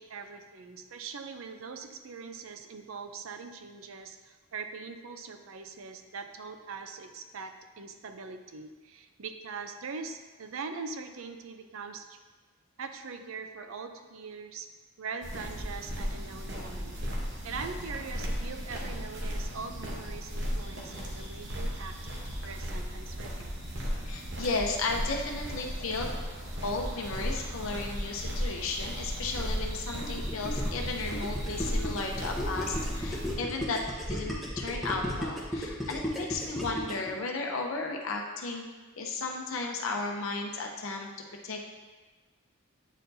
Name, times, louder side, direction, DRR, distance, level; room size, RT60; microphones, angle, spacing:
voice 1, 0.0-12.2 12.8-14.7 15.0-17.0 17.4-21.9 22.4-23.5, right 5 dB, 75° right, 7 dB, 0.5 m, -42 dB
sound 1, 15.2-33.3, equal, 55° right, 1.1 m, -35 dB
voice 2, 24.1-26.1 26.6-33.8 34.1-38.7 39.0-41.1 41.4-41.6, left 3 dB, 75° left, 1 dB, 0.6 m, -34 dB
Gurgling, 30.0-37.1, equal, ahead, 1.0 m, -35 dB
8.9 x 4.6 x 2.7 m, 1.3 s
head